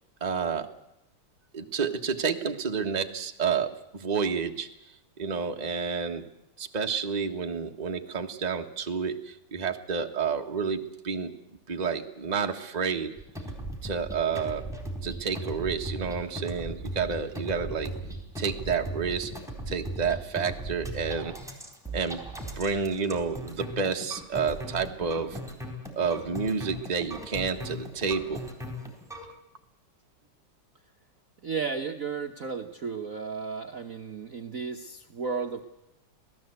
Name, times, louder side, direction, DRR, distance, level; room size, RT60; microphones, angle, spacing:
voice 1, 0.2-0.7 1.5-4.7 5.2-6.3 6.6-11.3 11.7-13.1 13.8-14.7 15.0-17.9 18.4-19.3 19.7-21.4 21.9-22.2 22.6-25.4 25.9-28.4 29.2-29.3, right 5 dB, 20° right, 4 dB, 1.4 m, -30 dB
sound 1, 13.2-29.3, right 1 dB, ahead, 3.9 m, -38 dB
voice 2, 31.4-35.6, right 5 dB, 45° right, 4 dB, 1.3 m, -34 dB
26.5 x 17.5 x 8.1 m, 0.89 s
omnidirectional pair, 2.4 m